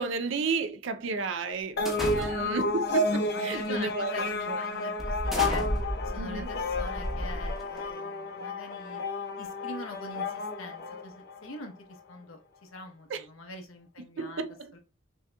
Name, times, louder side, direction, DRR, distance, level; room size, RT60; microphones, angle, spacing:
voice 1, 0.0-4.6 6.2-6.5 13.1-13.2 14.2-14.7, right 4 dB, 65° right, 0.5 m, -32 dB
sound 1, 1.8-11.6, left 2 dB, 50° left, 0.7 m, -32 dB
sound 2, 1.9-2.7 3.5-3.7 4.2-4.3 5.0-7.9, equal, ahead, 1.0 m, -33 dB
voice 2, 3.1-5.6 6.0-9.0 9.4-11.7 12.1-14.4 14.7-14.8, left 2 dB, 85° left, 0.9 m, -43 dB
6.1 x 2.8 x 2.2 m
head